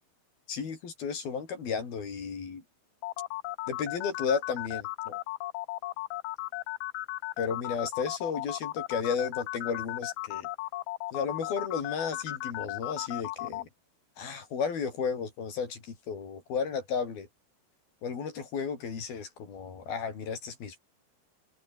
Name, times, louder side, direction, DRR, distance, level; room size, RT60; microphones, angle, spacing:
voice 1, 0.5-2.6 3.7-5.2 7.4-10.5 11.1-13.7 14.2-17.3 18.0-20.8, left 6 dB, 65° left, 6.5 m, -33 dB
sound 1, 3.0-13.6, left 18 dB, 85° left, 1.8 m, -35 dB
open air
omnidirectional pair, 4.7 m